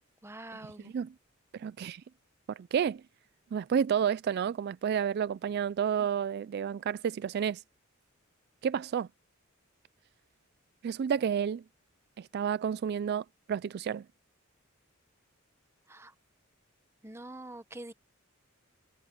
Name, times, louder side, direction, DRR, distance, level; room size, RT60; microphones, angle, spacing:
voice 1, 0.2-0.9 15.9-16.1 17.0-17.9, right 1 dB, 10° right, 1.0 m, -45 dB
voice 2, 1.5-2.0 2.5-3.0 3.5-7.6 8.6-9.1 10.8-11.6 12.2-14.0, right 7 dB, 50° right, 0.3 m, -30 dB
head